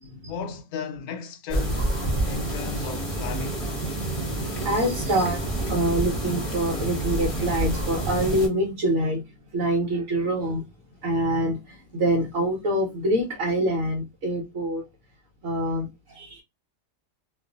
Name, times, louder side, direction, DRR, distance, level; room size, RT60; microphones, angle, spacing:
voice 1, 0.3-1.8 2.3-3.7, left 7 dB, 85° left, 1.1 m, -35 dB
sound 1, 1.5-8.5, right 1 dB, 30° left, 0.9 m, -28 dB
voice 2, 4.0-9.2 9.5-10.6 11.0-14.8 15.4-16.4, right 1 dB, 65° right, 1.0 m, -26 dB
2.5 x 2.4 x 2.4 m
omnidirectional pair, 1.6 m